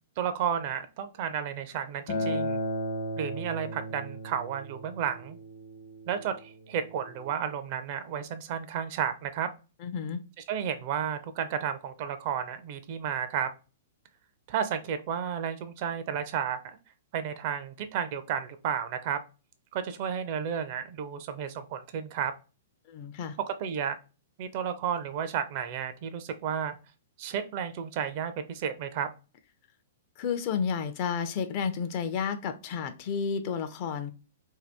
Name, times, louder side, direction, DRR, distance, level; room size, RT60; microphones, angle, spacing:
voice 1, 0.2-2.6 3.2-5.4 6.1-9.5 10.5-13.5 14.5-16.6 17.1-19.2 19.7-22.3 23.4-24.0 24.4-26.8 27.2-29.1, right 8 dB, 45° right, 0.4 m, -32 dB
Acoustic guitar, 2.1-7.3, equal, 60° left, 1.0 m, -35 dB
voice 2, 9.8-10.2 22.9-23.4 30.2-34.1, left 6 dB, 40° left, 0.4 m, -31 dB
2.7 x 2.2 x 3.3 m
figure-of-eight pair, 110°, 0 cm